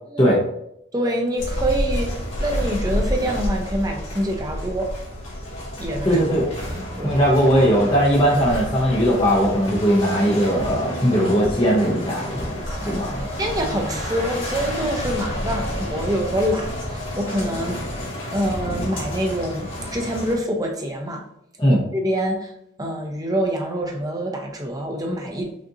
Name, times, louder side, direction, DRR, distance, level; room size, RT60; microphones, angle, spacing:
voice 1, 0.9-4.9 5.8-6.2 6.6-7.2 12.7-13.0 13.4-17.8 18.3-21.2 21.7-22.5 22.8-25.5, equal, 20° right, 2 dB, 0.5 m, -26 dB
sound 1, 1.4-20.3, left 1 dB, 75° left, 1.3 m, -29 dB
voice 2, 6.0-6.5 7.0-12.6 12.8-13.3 21.6-21.8, equal, 20° left, -4 dB, 0.7 m, -19 dB
5.1 x 2.6 x 2.7 m, 0.76 s
head